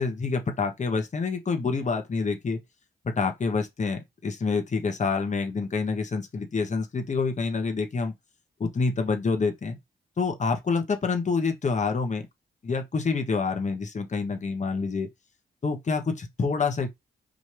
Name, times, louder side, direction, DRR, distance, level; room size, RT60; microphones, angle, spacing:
voice 1, 0.0-2.6 3.0-8.1 8.6-9.8 10.2-12.3 12.6-15.1 15.6-16.9, left 4 dB, 45° left, 1.1 m, -27 dB
5.0 x 2.7 x 3.3 m
cardioid pair, 65°, 18 cm